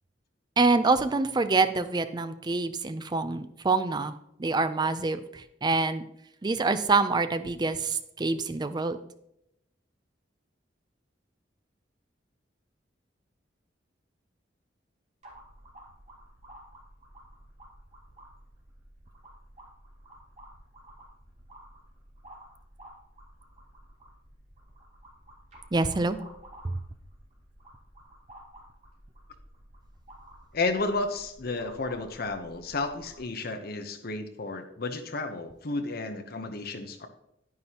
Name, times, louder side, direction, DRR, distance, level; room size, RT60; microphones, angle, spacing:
voice 1, 0.6-4.1 4.4-6.0 6.4-9.0 25.7-26.2 26.6-26.7, right 3 dB, 20° right, 11 dB, 0.4 m, -26 dB
sound 1, 15.2-33.2, right 1 dB, 40° right, 3.4 m, -52 dB
voice 2, 30.5-37.1, left 3 dB, 55° left, 7 dB, 0.9 m, -32 dB
9.8 x 9.6 x 2.9 m, 0.79 s
head